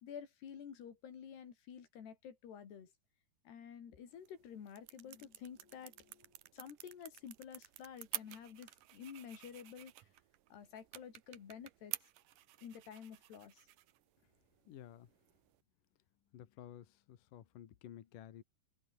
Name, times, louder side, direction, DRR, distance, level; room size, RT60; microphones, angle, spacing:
voice 1, 0.0-2.9 3.5-10.1 10.5-12.0 12.6-13.6, left 8 dB, 85° left, 5.5 m, -51 dB
sound 1, 4.1-15.6, right 15 dB, 65° right, 2.3 m, -51 dB
voice 2, 14.7-15.1 16.3-18.4, left 11 dB, 60° left, 3.1 m, -53 dB
open air
omnidirectional pair, 4.6 m